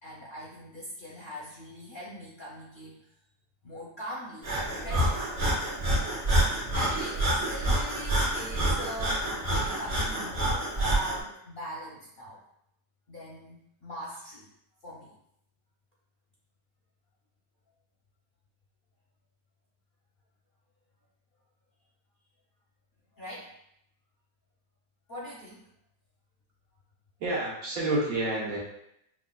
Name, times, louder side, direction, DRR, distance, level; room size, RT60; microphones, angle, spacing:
voice 1, 0.0-3.0 3.6-5.2 6.7-9.2 9.6-12.4 13.1-14.5 14.8-15.1 23.2-23.5 25.1-25.6, equal, 50° left, -5 dB, 0.6 m, -41 dB
Breathing, 4.4-11.2, right 1 dB, 50° right, 1.3 m, -27 dB
voice 2, 27.2-28.6, right 2 dB, 75° right, -4 dB, 1.4 m, -29 dB
5.4 x 2.5 x 2.3 m, 0.75 s
omnidirectional pair, 1.5 m